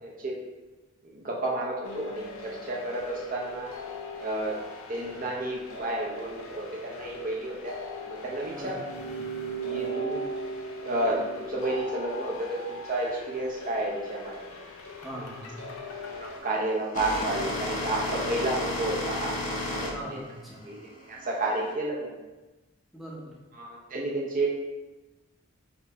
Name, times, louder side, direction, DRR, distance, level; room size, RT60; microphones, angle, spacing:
voice 1, 0.0-0.3 1.0-3.7 4.2-4.6 4.9-7.8 8.1-8.7 9.6-10.3 10.8-14.6 15.1-15.2 16.0-19.3 19.7-20.2 20.6-22.2 23.5-24.5, right 2 dB, 40° right, -2 dB, 0.7 m, -31 dB
sound 1, 1.8-16.4, right 1 dB, 75° left, 0.6 m, -39 dB
voice 2, 15.0-15.7 19.9-20.6 22.9-23.3, equal, ahead, -6 dB, 0.7 m, -41 dB
sound 2, 15.9-21.7, left 1 dB, 35° left, 0.7 m, -33 dB
4.3 x 2.7 x 4.0 m, 1.1 s
head